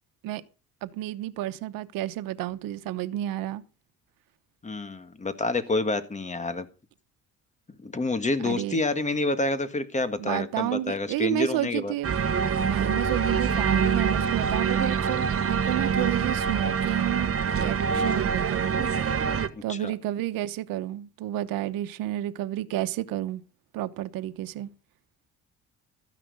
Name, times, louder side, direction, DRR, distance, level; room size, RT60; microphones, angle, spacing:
voice 1, 0.8-3.6 8.4-8.8 10.2-12.2 12.6-18.7 19.6-23.4 23.7-24.7, right 14 dB, 90° right, 1.0 m, -31 dB
voice 2, 4.6-6.7 7.8-11.9 17.9-18.1 19.5-19.9, left 2 dB, 20° left, 1.7 m, -28 dB
sound 1, 12.0-19.5, right 6 dB, 45° right, 1.3 m, -25 dB
13.5 x 10.0 x 5.5 m
cardioid pair, 110°, 33 cm